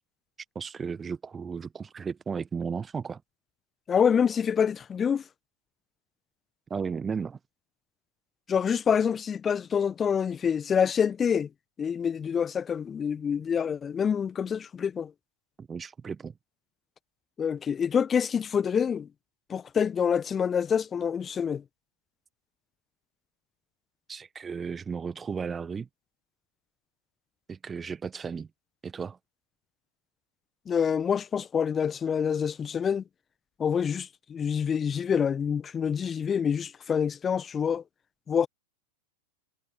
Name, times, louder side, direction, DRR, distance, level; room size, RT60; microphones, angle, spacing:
voice 1, 0.5-3.2 6.7-7.4 15.6-16.3 24.1-25.9 27.5-28.5 28.8-29.2, right 6 dB, 15° right, 1.1 m, -34 dB
voice 2, 3.9-5.2 8.5-11.5 11.8-15.1 17.4-19.1 19.5-21.6 30.7-33.0 33.6-37.8 38.3-38.5, left 7 dB, 20° left, 1.5 m, -26 dB
figure-of-eight pair, 90°, 0 cm